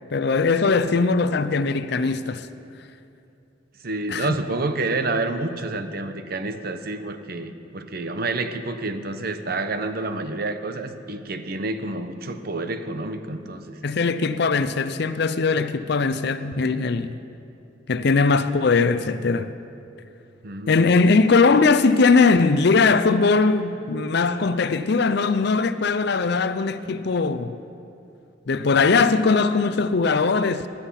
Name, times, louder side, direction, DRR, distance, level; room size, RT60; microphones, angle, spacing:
voice 1, 0.1-2.5 4.1-4.3 13.8-17.2 17.9-19.5 20.7-27.6 28.5-30.7, left 4 dB, 60° left, 0.5 m, -20 dB
voice 2, 3.8-13.8 20.4-20.8, right 2 dB, 50° right, 0.9 m, -29 dB
19.5 x 11.5 x 5.7 m
head